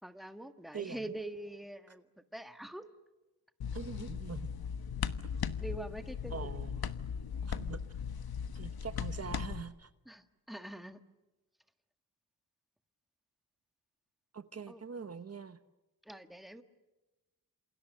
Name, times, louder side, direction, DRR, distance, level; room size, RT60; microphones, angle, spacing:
voice 1, 0.0-2.9 5.6-6.5 10.0-11.0 14.7-14.8 16.0-16.6, right 1 dB, ahead, 1.6 m, -44 dB
sound 1, 3.6-9.6, left 7 dB, 90° left, 1.3 m, -38 dB
voice 2, 3.7-4.5 5.2-5.4 6.3-6.8 7.4-7.8 8.5-9.9 14.3-15.6, right 6 dB, 45° right, 1.0 m, -43 dB
28.5 x 28.0 x 6.6 m
wide cardioid pair, 150°, 36 cm